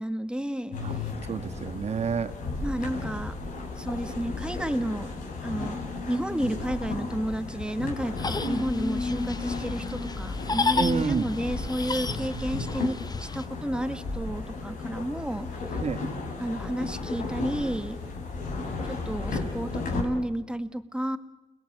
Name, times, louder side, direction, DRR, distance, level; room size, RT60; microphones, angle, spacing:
voice 1, 0.0-1.0 2.6-3.4 3.8-5.1 5.4-15.8 16.4-18.0 18.8-21.2, right 1 dB, 5° right, 9 dB, 2.1 m, -31 dB
sound 1, 0.7-20.0, left 3 dB, 80° left, 6.0 m, -34 dB
voice 2, 0.8-2.3 10.8-11.2 15.8-16.0, right 6 dB, 50° right, 10 dB, 1.8 m, -29 dB
sound 2, 8.2-13.5, left 4 dB, 30° left, 1.1 m, -32 dB
29.5 x 21.0 x 9.1 m, 1.1 s
supercardioid pair, 60°, 14 cm